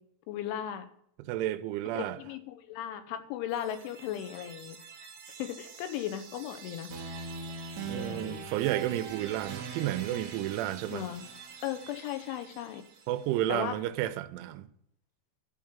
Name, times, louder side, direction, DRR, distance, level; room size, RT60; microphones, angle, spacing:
voice 1, 0.3-0.9 2.2-4.8 5.4-6.9 7.9-8.5 10.9-11.2 11.6-12.8 13.5-13.8, left 11 dB, 85° left, 3.3 m, -36 dB
voice 2, 1.3-2.2 7.9-11.0 13.1-14.7, right 13 dB, 90° right, 3.0 m, -31 dB
sound 1, 3.5-13.4, right 5 dB, 75° right, 1.6 m, -43 dB
12.0 x 4.7 x 7.2 m
omnidirectional pair, 5.4 m